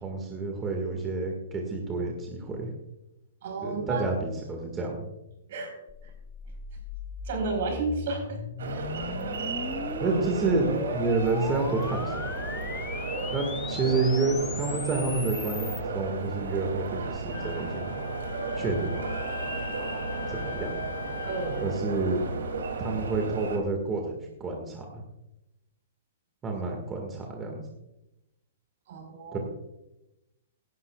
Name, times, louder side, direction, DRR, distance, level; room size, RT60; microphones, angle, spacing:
voice 1, 0.0-2.7 3.6-5.1 10.0-12.7 13.3-17.9 18.5-19.0 20.3-20.7 21.6-22.2 22.8-25.0 26.4-27.7 29.3-29.4, right 3 dB, 15° right, 1 dB, 1.7 m, -29 dB
voice 2, 3.4-4.0 5.5-5.7 7.2-8.4 21.3-21.7 28.9-29.4, right 3 dB, 60° right, 4 dB, 4.3 m, -31 dB
sound 1, 5.9-15.8, left 6 dB, 15° left, 0.6 m, -39 dB
sound 2, 8.6-23.6, right 3 dB, 85° right, 2.6 m, -34 dB
Wind instrument woodwind instrument, 17.3-21.8, left 7 dB, 80° left, 1.2 m, -40 dB
17.0 x 11.0 x 2.3 m, 0.90 s
hypercardioid pair, 155°, 0 cm